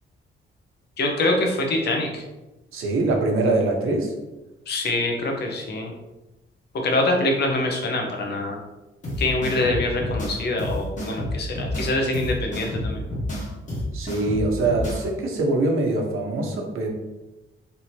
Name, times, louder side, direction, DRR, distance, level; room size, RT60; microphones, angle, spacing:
voice 1, 1.0-2.2 4.7-5.9 6.8-8.6 9.2-13.0, left 2 dB, 55° left, 1 dB, 0.9 m, -24 dB
voice 2, 2.7-4.1 13.9-16.9, right 2 dB, 85° right, 1 dB, 0.9 m, -23 dB
sound 1, 9.0-15.0, left 1 dB, 35° left, 1.2 m, -29 dB
3.5 x 2.8 x 4.4 m, 1.0 s
wide cardioid pair, 160°, 21 cm